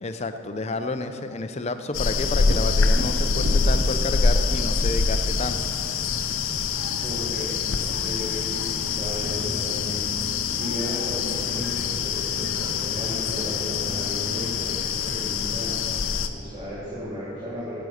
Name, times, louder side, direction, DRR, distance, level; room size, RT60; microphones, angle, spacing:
voice 1, 0.0-5.6, left 3 dB, 30° left, 8 dB, 0.5 m, -30 dB
sound 1, 1.9-16.3, left 5 dB, 85° left, 0.6 m, -25 dB
Thunder, 2.4-10.1 13.7-13.8 14.3-15.2, right 1 dB, 50° right, 0.9 m, -39 dB
voice 2, 7.0-7.6 7.9-10.0 10.5-15.7 16.3-17.8, equal, 30° right, -11 dB, 2.5 m, -34 dB
10.5 x 8.0 x 6.4 m, 2.8 s
head